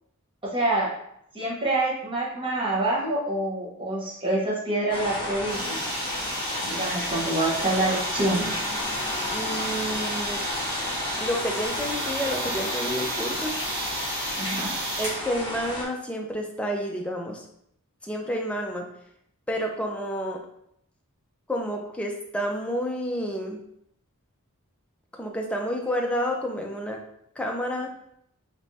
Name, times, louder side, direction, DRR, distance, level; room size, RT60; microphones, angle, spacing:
voice 1, 0.4-0.9 1.3-5.9 6.6-8.5 14.4-14.7, right 2 dB, 25° right, -5 dB, 1.0 m, -26 dB
sound 1, 4.9-15.8, left 1 dB, 25° left, 0.8 m, -32 dB
sound 2, 5.5-15.2, right 1 dB, 45° right, 1.4 m, -33 dB
voice 2, 9.3-10.5 11.2-13.5 15.0-17.4 18.0-18.9 19.5-20.4 21.5-23.6 25.2-27.0 27.4-27.9, equal, 5° left, 1 dB, 0.4 m, -30 dB
3.4 x 3.3 x 2.6 m, 0.75 s
head